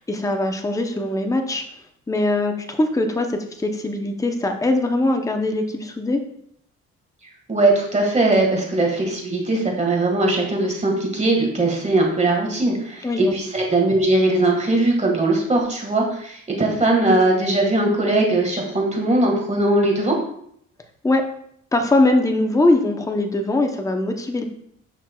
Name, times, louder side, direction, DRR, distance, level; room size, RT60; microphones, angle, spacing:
voice 1, 0.0-1.6 2.1-6.2 13.0-13.3 21.0-21.2 21.7-24.4, left 2 dB, 10° left, 5 dB, 0.8 m, -21 dB
voice 2, 7.5-20.2, right 2 dB, 25° right, 0 dB, 1.8 m, -20 dB
8.2 x 6.0 x 2.3 m, 0.68 s
cardioid pair, 90°, 30 cm